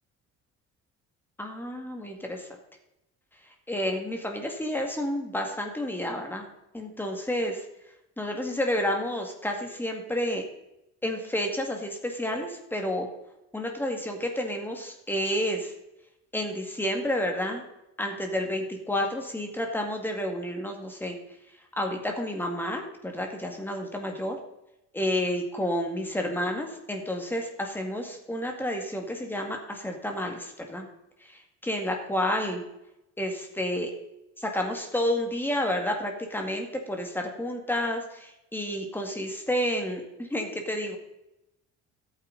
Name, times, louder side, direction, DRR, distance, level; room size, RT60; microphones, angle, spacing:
voice 1, 1.4-2.5 3.7-6.5 6.7-7.6 8.2-10.4 11.0-13.1 13.5-15.7 16.3-17.6 18.0-21.2 21.8-24.4 24.9-30.9 31.6-32.6 33.2-33.9 34.4-41.0, left 1 dB, 5° left, 3 dB, 2.1 m, -30 dB
13.5 x 8.8 x 4.1 m, 0.88 s
cardioid pair, 140°, 29 cm